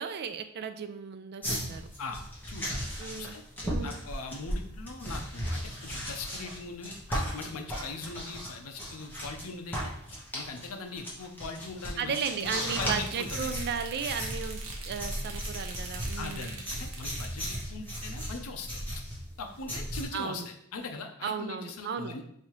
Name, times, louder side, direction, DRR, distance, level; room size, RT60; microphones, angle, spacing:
voice 1, 0.0-1.8 3.0-3.3 3.6-4.0 12.0-16.6 20.1-20.5 21.2-22.1, right 6 dB, 50° right, 9 dB, 0.4 m, -35 dB
sound 1, 1.4-9.4 9.7-20.0, equal, 10° left, 1.1 m, -36 dB
voice 2, 2.0-3.4 3.8-9.9 10.3-13.5 16.2-18.8 19.4-22.3, left 3 dB, 70° left, 4 dB, 0.6 m, -41 dB
sound 2, 12.1-17.7, right 3 dB, 65° right, 0.8 m, -44 dB
5.2 x 2.7 x 3.0 m, 0.69 s
head